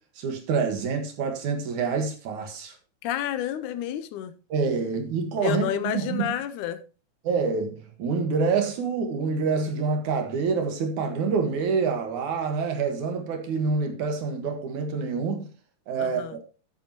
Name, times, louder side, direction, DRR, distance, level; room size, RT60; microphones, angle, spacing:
voice 1, 0.2-2.7 4.5-6.3 7.2-15.5 15.9-16.2, right 5 dB, 65° right, 2.8 m, -27 dB
voice 2, 3.0-4.3 5.4-6.8 16.0-16.4, left 11 dB, 80° left, 2.0 m, -30 dB
11.5 x 9.1 x 2.9 m
omnidirectional pair, 3.8 m